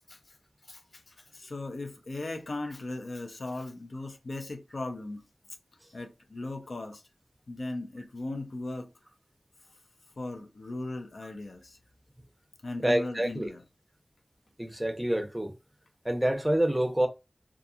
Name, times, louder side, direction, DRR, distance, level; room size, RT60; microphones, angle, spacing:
voice 1, 0.7-5.2 5.9-7.0 7.5-8.9 10.2-11.8 12.6-13.6, left 2 dB, 80° left, 0.5 m, -38 dB
voice 2, 12.8-13.5 14.6-15.5 16.0-17.1, right 1 dB, 15° right, 0.7 m, -27 dB
2.7 x 2.3 x 2.3 m
wide cardioid pair, 45°, 0 cm